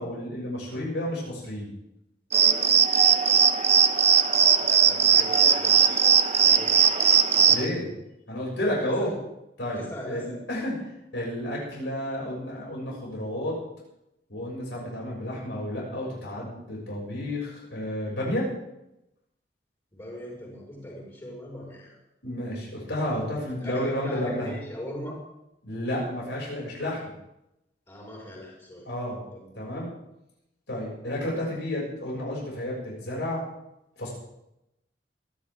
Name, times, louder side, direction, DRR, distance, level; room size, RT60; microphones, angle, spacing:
voice 1, 0.0-1.7 7.5-7.9 8.3-9.1 9.6-10.7 11.1-13.6 14.3-18.5 22.2-24.5 25.6-27.0 28.9-29.2 29.6-29.9 30.7-33.4 34.0-34.1, left 1 dB, 80° left, -4 dB, 7.1 m, -31 dB
sound 1, 2.3-7.7, right 7 dB, 40° right, 1.0 m, -19 dB
voice 2, 4.3-6.1 6.4-6.9 7.3-7.6 8.8-9.2 9.7-10.4 19.9-22.0 23.5-25.2 27.9-28.9 29.3-29.7, equal, 25° left, -5 dB, 5.4 m, -40 dB
27.5 x 11.5 x 3.8 m, 0.87 s
head